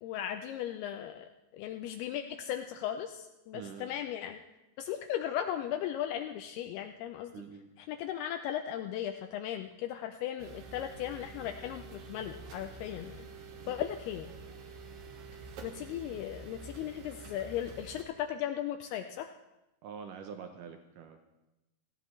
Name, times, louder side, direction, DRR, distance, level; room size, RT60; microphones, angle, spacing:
voice 1, 0.0-4.4 4.8-7.3 7.8-13.3 13.7-14.3 15.6-19.3, left 10 dB, 80° left, 7 dB, 2.5 m, -37 dB
voice 2, 3.5-3.9 7.3-7.7 13.6-13.7 19.8-21.2, right 6 dB, 80° right, 6 dB, 1.9 m, -45 dB
sound 1, 10.4-18.0, right 4 dB, 65° right, 2.8 m, -48 dB
18.0 x 15.0 x 3.2 m, 0.97 s
omnidirectional pair, 4.7 m